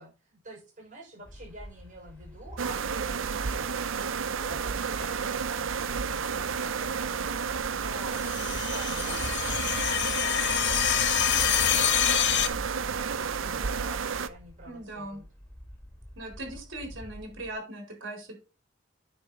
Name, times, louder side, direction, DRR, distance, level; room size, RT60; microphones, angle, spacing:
voice 1, 0.0-7.3 7.6-15.3, right 1 dB, 40° right, -2 dB, 5.8 m, -49 dB
sound 1, 1.2-17.5, equal, 10° left, 3.3 m, -44 dB
sound 2, 2.6-14.3, right 6 dB, 90° right, 0.6 m, -31 dB
sound 3, 8.2-12.5, left 10 dB, 65° left, 0.8 m, -26 dB
voice 2, 14.7-15.2 16.2-18.4, right 1 dB, 70° right, 2 dB, 4.4 m, -39 dB
9.6 x 6.1 x 4.1 m, 0.33 s
head